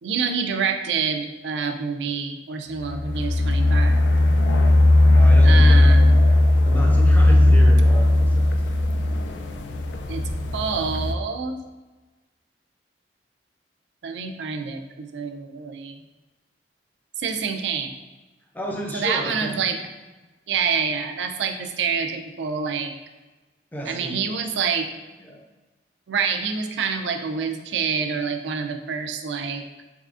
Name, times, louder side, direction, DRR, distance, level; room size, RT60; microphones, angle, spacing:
voice 1, 0.0-4.0 5.4-6.3 10.1-10.2 10.5-11.6 14.0-16.0 17.2-17.9 18.9-19.8 20.5-22.9 23.9-24.9 26.1-29.6, right 6 dB, 85° right, 6 dB, 0.4 m, -27 dB
sound 1, 2.8-11.1, left 1 dB, 85° left, 0.3 m, -17 dB
voice 2, 5.1-6.3 6.6-8.8 18.5-19.5 23.7-24.4 25.2-25.4, equal, 10° left, -1 dB, 0.5 m, -32 dB
3.6 x 3.2 x 2.4 m, 1.2 s
head